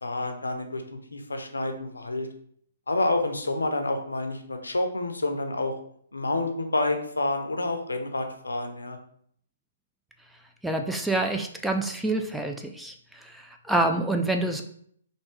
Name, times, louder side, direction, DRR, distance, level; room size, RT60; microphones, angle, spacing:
voice 1, 0.0-2.3 2.9-5.7 6.1-9.0, left 2 dB, 80° left, 5 dB, 0.5 m, -28 dB
voice 2, 10.6-14.6, right 2 dB, 5° right, 4 dB, 0.3 m, -27 dB
3.3 x 2.7 x 3.1 m, 0.64 s
figure-of-eight pair, 125°, 0 cm